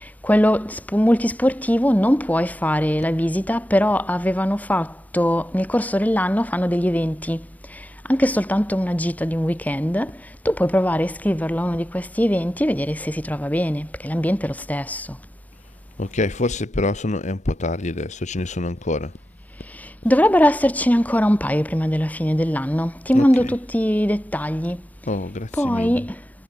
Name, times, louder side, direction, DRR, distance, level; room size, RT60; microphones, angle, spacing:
voice 1, 0.2-4.9 5.1-7.4 8.1-10.1 10.4-15.1 20.0-24.8 25.6-26.1, equal, 10° left, 5.8 m, -21 dB
voice 2, 16.0-19.1 23.1-23.5 25.1-26.0, left 2 dB, 40° left, 1.1 m, -26 dB
head